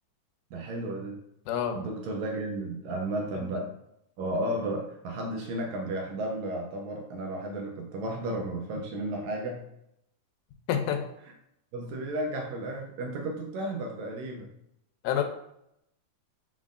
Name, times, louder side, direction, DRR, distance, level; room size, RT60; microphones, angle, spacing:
voice 1, 0.5-1.2 1.7-3.7 4.2-9.7 11.7-14.5, right 1 dB, 75° right, 1 dB, 1.7 m, -33 dB
voice 2, 1.5-1.8 3.4-3.5 10.7-11.0 15.0-15.2, left 9 dB, 85° left, 6 dB, 2.1 m, -27 dB
5.2 x 3.7 x 2.4 m, 0.78 s
omnidirectional pair, 3.6 m